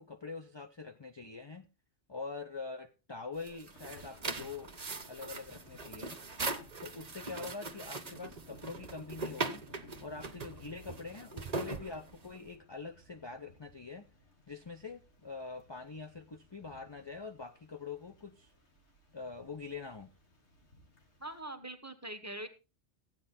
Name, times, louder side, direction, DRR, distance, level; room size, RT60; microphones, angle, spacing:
voice 1, 0.0-1.7 2.1-4.7 5.1-6.2 6.8-9.6 10.0-14.1 14.5-18.5 19.1-20.1, left 4 dB, 30° left, 7 dB, 0.6 m, -44 dB
sound 1, 3.3-12.5, right 3 dB, 40° right, 1.1 m, -40 dB
Thunder / Rain, 3.7-21.4, left 1 dB, 85° left, 2.5 m, -59 dB
voice 2, 21.2-22.5, right 1 dB, 15° right, 8 dB, 1.2 m, -43 dB
13.5 x 9.0 x 4.1 m, 0.30 s
omnidirectional pair, 1.1 m